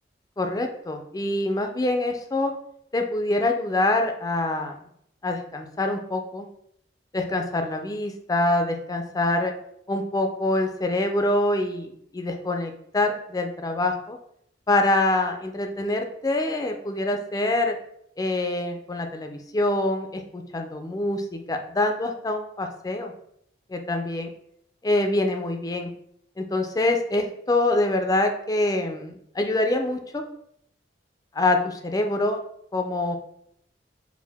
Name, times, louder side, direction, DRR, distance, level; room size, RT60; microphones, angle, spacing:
voice 1, 0.4-2.5 2.9-4.8 5.2-6.5 7.1-9.5 9.9-14.2 14.7-17.8 18.2-23.1 23.7-24.3 24.8-25.9 26.4-30.2 31.3-32.4 32.7-33.2, left 2 dB, 20° left, 5 dB, 0.4 m, -25 dB
4.7 x 2.5 x 3.4 m, 0.72 s
head